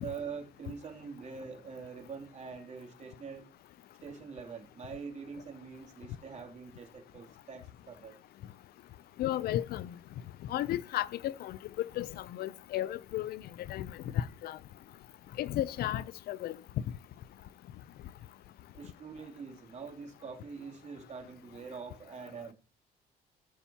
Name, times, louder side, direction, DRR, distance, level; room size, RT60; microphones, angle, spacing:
voice 1, 0.0-3.4 4.0-8.2 18.7-22.5, right 5 dB, 40° right, 2.9 m, -44 dB
voice 2, 9.2-9.9 10.5-13.4 13.7-14.6 15.4-16.5, left 13 dB, 65° left, 0.5 m, -34 dB
17.0 x 7.0 x 2.9 m
cardioid pair, 110°, 17 cm